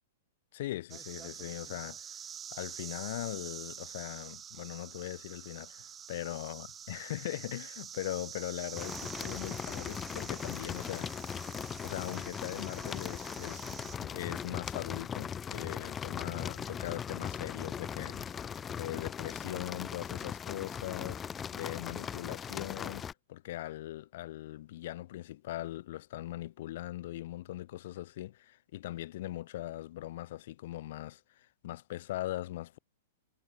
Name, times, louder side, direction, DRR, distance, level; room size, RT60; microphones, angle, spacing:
voice 1, 0.5-2.2 2.5-11.4 11.8-32.8, left 15 dB, 60° left, 1.2 m, -40 dB
sound 1, 0.9-14.0, right 8 dB, 20° right, 1.9 m, -47 dB
sound 2, 8.7-23.1, left 7 dB, 15° left, 0.9 m, -39 dB
hypercardioid pair, 140°, 0 cm